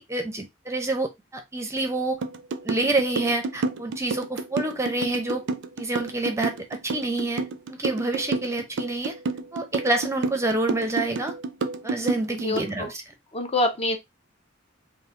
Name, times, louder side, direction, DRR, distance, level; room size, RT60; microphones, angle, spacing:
voice 1, 0.0-2.2 2.6-5.4 5.8-7.4 7.7-9.1 9.5-11.3 11.8-13.0, right 2 dB, 15° right, 0.6 m, -27 dB
sound 1, 2.2-12.7, right 3 dB, 65° right, 0.5 m, -29 dB
voice 2, 12.4-12.9 13.3-14.0, left 1 dB, 30° left, 0.6 m, -26 dB
3.6 x 2.6 x 3.6 m
head